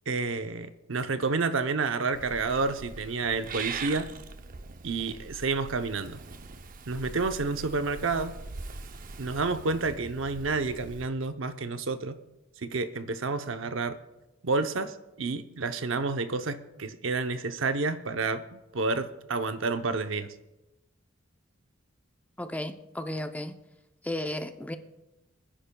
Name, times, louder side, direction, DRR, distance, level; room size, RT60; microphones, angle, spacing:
voice 1, 0.1-4.1 4.8-6.2 6.9-8.3 9.2-12.2 12.6-14.0 14.4-20.3, right 3 dB, 80° right, 0.8 m, -30 dB
Purr / Meow, 2.1-11.1, right 4 dB, 45° right, 0.6 m, -42 dB
voice 2, 22.4-23.6 24.0-24.8, left 1 dB, 10° left, 0.6 m, -34 dB
26.5 x 10.0 x 2.3 m
head